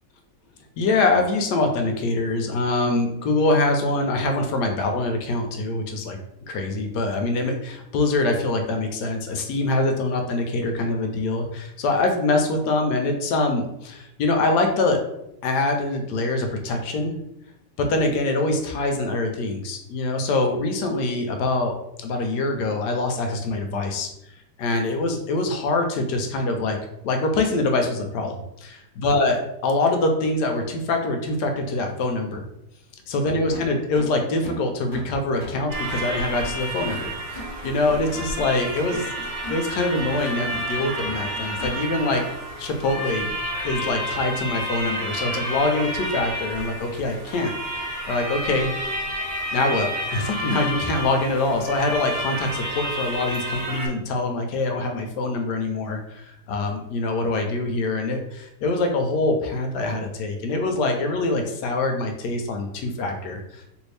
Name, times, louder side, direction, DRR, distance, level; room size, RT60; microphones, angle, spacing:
voice 1, 0.8-6.2 6.5-15.0 15.4-17.2 17.8-21.7 22.0-24.1 24.6-26.8 27.0-32.4 33.1-39.1 39.5-42.2 42.6-43.4 43.6-48.7 49.5-63.6, left 2 dB, 75° left, 4 dB, 1.1 m, -24 dB
sound 1, 33.5-42.1, left 1 dB, 25° left, 1.5 m, -40 dB
sound 2, 35.7-53.9, equal, 55° right, 1.2 m, -30 dB
3.0 x 2.6 x 3.2 m, 0.83 s
omnidirectional pair, 2.0 m